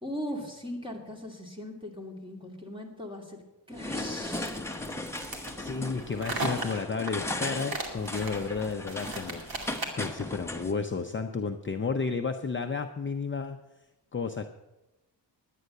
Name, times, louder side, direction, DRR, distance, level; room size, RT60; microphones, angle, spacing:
voice 1, 0.0-3.4 3.7-4.6, equal, 10° right, 1 dB, 2.6 m, -39 dB
sound 1, 3.7-10.7, left 1 dB, 5° left, 1.0 m, -37 dB
sound 2, 4.3-10.2, right 3 dB, 55° right, 2.4 m, -37 dB
voice 2, 5.2-13.6 14.1-14.5, left 4 dB, 30° left, 6 dB, 0.6 m, -32 dB
11.0 x 9.3 x 6.6 m, 0.96 s
wide cardioid pair, 105°, 42 cm